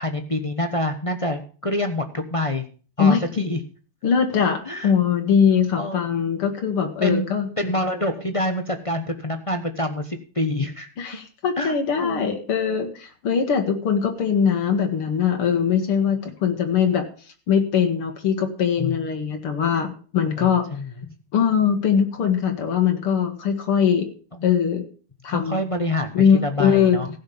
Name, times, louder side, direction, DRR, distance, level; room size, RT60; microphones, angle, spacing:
voice 1, 0.0-2.7 3.0-3.6 4.7-4.9 5.7-6.0 7.0-10.9 11.6-11.7 12.0-12.3 18.8-19.0 20.4-20.9 24.3-24.4 25.3-27.1, left 1 dB, 30° left, 6 dB, 0.6 m, -26 dB
voice 2, 4.0-7.5 11.0-17.1 17.5-20.6 21.3-24.1 24.4-24.8 25.2-25.6 26.1-27.0, left 7 dB, 80° left, 4 dB, 2.6 m, -21 dB
16.0 x 5.7 x 7.0 m, 0.39 s
omnidirectional pair, 2.4 m